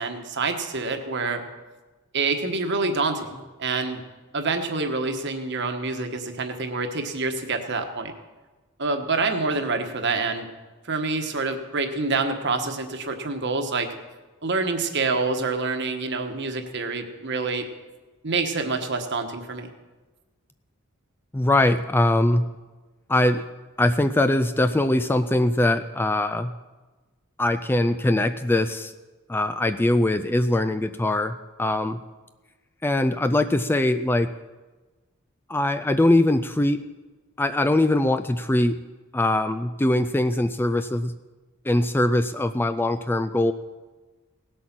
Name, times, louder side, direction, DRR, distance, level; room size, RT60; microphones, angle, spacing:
voice 1, 0.0-1.4 2.1-4.0 4.3-8.1 8.8-10.5 10.9-13.9 14.4-17.6 18.2-19.7, right 3 dB, 55° right, 6 dB, 1.3 m, -27 dB
voice 2, 21.3-22.5 23.1-23.4 23.8-26.5 27.4-28.9 29.3-32.0 32.8-34.3 35.5-36.8 37.4-38.8 39.1-41.1 41.7-43.5, left 1 dB, 10° left, 10 dB, 0.3 m, -22 dB
18.0 x 8.1 x 6.0 m, 1.2 s
head